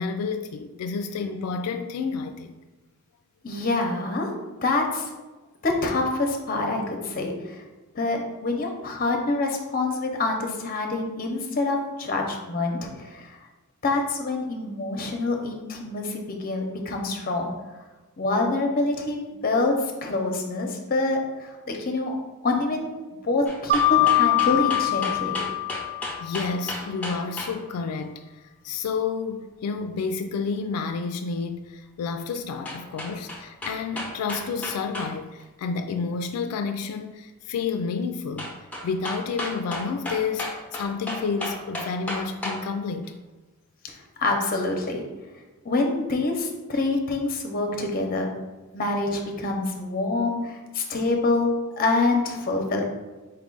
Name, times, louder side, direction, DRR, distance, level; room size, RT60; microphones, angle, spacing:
voice 1, 0.0-2.5 26.2-38.5 38.8-40.5 40.7-43.2, left 5 dB, 90° left, 10 dB, 0.3 m, -30 dB
voice 2, 3.4-4.3 4.6-5.1 5.6-7.6 7.9-13.4 13.8-17.5 18.2-19.7 20.0-22.2 22.4-22.9 23.2-25.5 43.8-43.9 44.2-45.0 45.6-48.3 48.7-51.5 51.8-52.8, left 2 dB, 40° left, 3 dB, 0.6 m, -26 dB
sound 1, 23.5-27.6 32.7-35.1 35.4-35.5 38.4-42.6 43.0-43.1, left 1 dB, 5° left, 0.7 m, -33 dB
Mallet percussion, 23.7-26.5, left 10 dB, 45° right, 0.6 m, -23 dB
4.5 x 2.4 x 3.7 m, 1.2 s
head